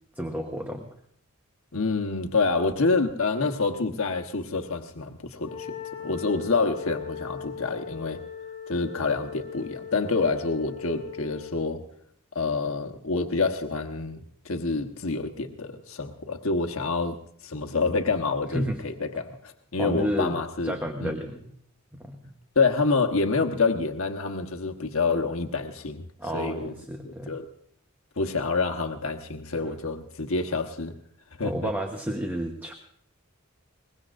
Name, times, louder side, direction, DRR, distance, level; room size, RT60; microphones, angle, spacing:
voice 1, 0.2-0.9 18.5-18.8 19.8-20.4 20.6-21.5 22.0-22.3 26.2-27.4 31.4-32.7, equal, 10° right, 3 dB, 1.0 m, -31 dB
voice 2, 1.7-8.2 8.7-11.8 12.3-17.2 17.4-21.2 22.5-26.1 26.3-26.7 27.0-27.5 28.2-31.0 31.4-31.7, left 3 dB, 80° left, 4 dB, 1.2 m, -27 dB
Wind instrument woodwind instrument, 5.3-11.6, left 7 dB, 30° left, 4.4 m, -39 dB
23.0 x 20.5 x 2.6 m, 0.66 s
head